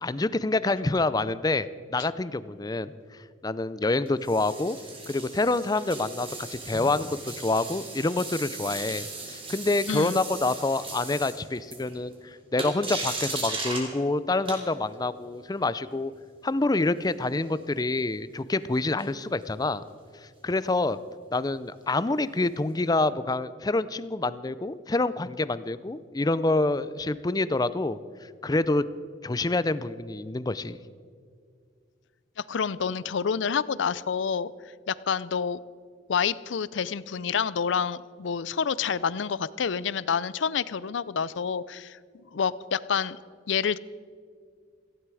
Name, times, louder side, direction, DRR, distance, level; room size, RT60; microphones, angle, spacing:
voice 1, 0.0-4.8 5.1-16.1 16.4-19.8 20.1-21.0 21.3-28.9 29.2-30.8, left 2 dB, 20° left, 16 dB, 0.5 m, -27 dB
sound 1, 4.0-12.1 12.6-13.9 14.5-15.0 19.0-19.4 23.0-23.1, right 3 dB, 30° right, 3.0 m, -37 dB
voice 2, 9.9-10.2 32.4-34.5 34.9-35.6 36.1-42.0 42.3-43.2 43.5-43.8, left 6 dB, 80° left, 19 dB, 0.5 m, -28 dB
17.5 x 16.0 x 4.8 m, 2.1 s
head